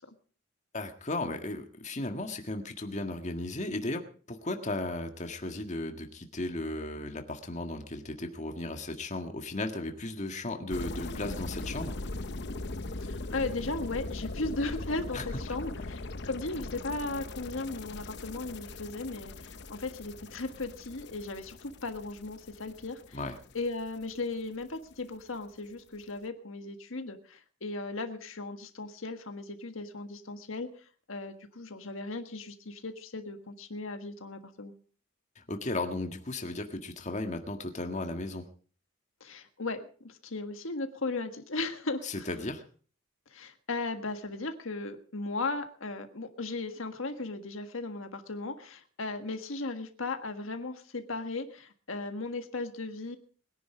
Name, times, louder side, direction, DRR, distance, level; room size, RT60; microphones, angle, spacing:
voice 1, 0.7-4.0 4.3-12.0 15.1-15.2 23.1-23.4 35.4-38.5 42.0-42.6, left 2 dB, 35° left, 5 dB, 1.7 m, -35 dB
sound 1, 10.7-24.7 25.0-25.2, left 2 dB, 55° left, 0.9 m, -40 dB
voice 2, 13.0-23.2 23.5-34.7 39.2-42.3 43.3-53.2, left 3 dB, 75° left, 7 dB, 1.6 m, -37 dB
21.5 x 10.5 x 5.0 m, 0.42 s
head